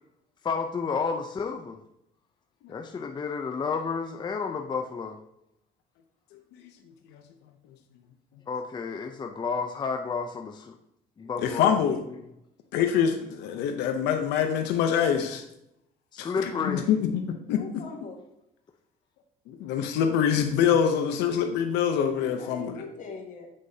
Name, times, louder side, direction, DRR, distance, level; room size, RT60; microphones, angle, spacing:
voice 1, 0.4-1.8 2.7-5.2 8.5-10.7 11.2-11.8 16.1-16.9, left 5 dB, 25° left, 4 dB, 0.6 m, -31 dB
voice 2, 11.4-12.0 12.7-15.4 16.2-17.8 19.6-22.9, left 8 dB, 90° left, 5 dB, 0.7 m, -25 dB
voice 3, 17.6-18.2 22.1-23.5, left 4 dB, 50° left, 1 dB, 1.7 m, -41 dB
7.8 x 6.2 x 2.8 m, 0.80 s
cardioid pair, 110°, 17 cm